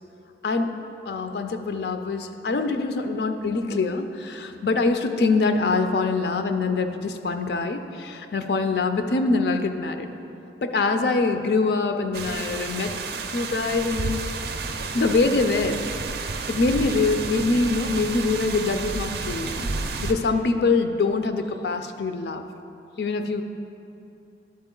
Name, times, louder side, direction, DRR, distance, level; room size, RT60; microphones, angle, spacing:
voice 1, 1.1-10.1 10.6-14.2 14.9-15.8 16.5-19.7 20.0-22.5 23.0-23.4, left 3 dB, 65° left, 7 dB, 0.4 m, -24 dB
sound 1, 12.1-20.1, right 4 dB, 60° right, 0.4 m, -31 dB
11.0 x 4.3 x 3.8 m, 2.7 s
head